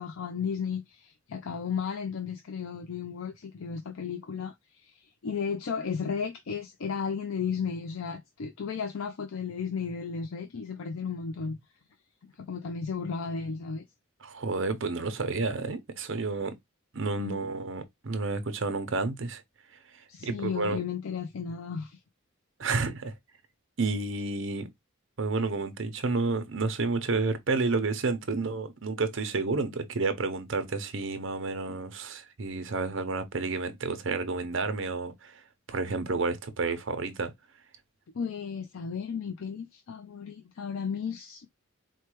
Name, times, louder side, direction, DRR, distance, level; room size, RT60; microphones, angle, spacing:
voice 1, 0.0-11.6 12.2-13.8 17.1-17.4 20.1-22.0 38.1-41.5, left 6 dB, 70° left, 0.4 m, -34 dB
voice 2, 14.2-16.5 16.9-19.4 20.2-20.8 22.6-23.1 23.8-24.7 25.2-35.4 35.7-37.3, right 3 dB, 60° right, 0.7 m, -30 dB
4.4 x 2.3 x 3.0 m
head